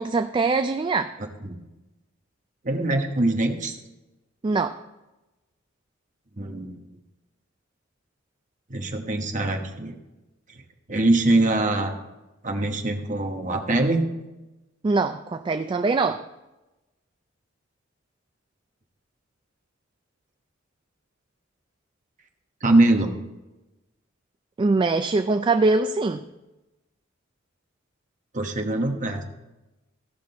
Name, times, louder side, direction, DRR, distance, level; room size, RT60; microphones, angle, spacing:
voice 1, 0.0-1.1 4.4-4.8 14.8-16.2 24.6-26.2, right 3 dB, 25° right, 8 dB, 0.3 m, -22 dB
voice 2, 1.2-1.6 2.6-3.8 6.4-6.8 8.7-9.9 10.5-10.6 10.9-11.9 12.4-14.0 22.6-23.1 28.3-29.3, right 2 dB, 40° right, 3 dB, 1.2 m, -23 dB
15.5 x 6.0 x 4.2 m, 1.0 s
head